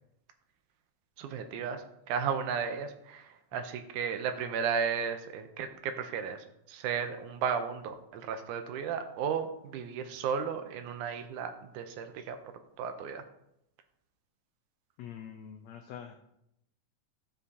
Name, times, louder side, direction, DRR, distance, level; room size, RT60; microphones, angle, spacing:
voice 1, 1.2-12.4 12.8-13.2, right 7 dB, 80° right, 8 dB, 2.0 m, -34 dB
voice 2, 15.0-16.1, left 9 dB, 85° left, 4 dB, 1.5 m, -45 dB
12.5 x 5.8 x 2.7 m, 0.79 s
omnidirectional pair, 3.8 m